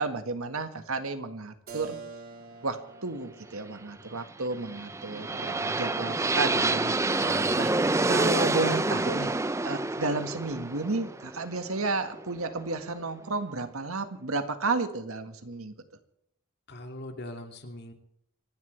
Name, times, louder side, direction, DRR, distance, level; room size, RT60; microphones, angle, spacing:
voice 1, 0.0-2.0 2.6-7.0 7.2-9.3 9.6-15.7, right 3 dB, 70° right, 8 dB, 1.7 m, -32 dB
Keyboard (musical), 1.7-7.3, right 4 dB, 45° right, 3.9 m, -49 dB
sound 1, 4.6-12.5, right 2 dB, 15° right, 0.5 m, -28 dB
voice 2, 7.2-7.5 16.7-17.9, left 1 dB, 50° left, 4 dB, 2.6 m, -41 dB
26.5 x 12.0 x 3.4 m, 0.74 s
head